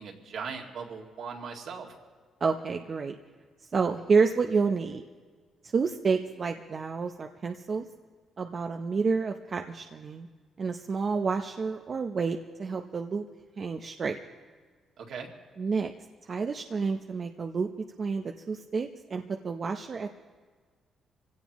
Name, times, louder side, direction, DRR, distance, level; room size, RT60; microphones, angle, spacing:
voice 1, 0.0-1.9 15.0-15.3, right 5 dB, 70° right, 0 dB, 2.2 m, -39 dB
voice 2, 2.4-3.1 3.7-5.0 5.6-7.8 8.4-10.3 10.6-13.3 13.6-14.2 15.6-15.9 16.2-17.7 18.0-20.1, right 5 dB, 45° right, 5 dB, 0.7 m, -29 dB
24.0 x 17.0 x 3.1 m, 1.5 s
cardioid pair, 90°, 0 cm